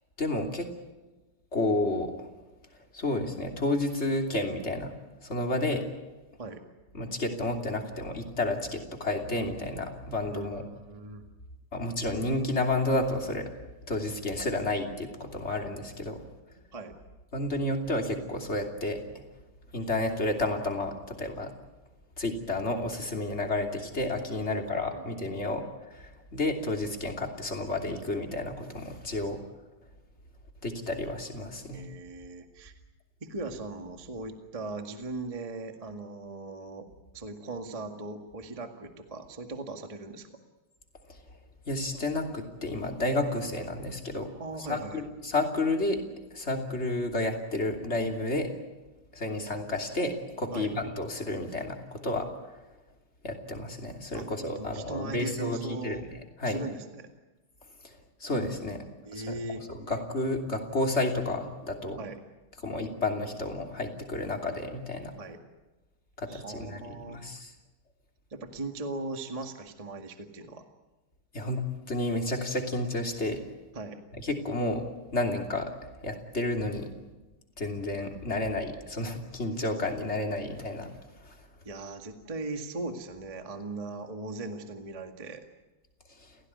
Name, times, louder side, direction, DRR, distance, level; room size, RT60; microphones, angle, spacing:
voice 1, 0.2-0.7 1.5-2.3 2.9-4.9 5.2-5.8 6.9-10.6 11.7-13.5 13.9-16.2 17.3-19.0 19.7-21.5 22.2-25.6 25.9-29.4 30.6-31.8 41.1-41.2 41.7-44.3 44.7-46.0 46.3-48.5 49.1-52.3 53.2-56.0 56.4-56.6 57.8-58.8 59.1-59.4 59.7-62.0 62.6-65.1 66.2-67.5 71.3-73.4 74.2-74.8 75.1-76.9 77.6-80.9 81.2-81.4 86.2-86.3, left 2 dB, 20° left, 3 dB, 2.9 m, -31 dB
voice 2, 10.3-11.2 16.7-17.0 24.5-25.4 31.7-32.7 33.2-36.9 37.1-40.4 44.4-45.0 50.5-50.7 54.1-54.3 54.5-56.1 56.4-57.1 59.0-59.6 62.0-62.2 65.2-65.4 66.3-67.2 68.3-70.6 73.7-74.0 81.6-85.4, right 2 dB, 15° right, 5 dB, 1.2 m, -39 dB
30.0 x 16.5 x 9.5 m, 1.1 s
omnidirectional pair, 3.6 m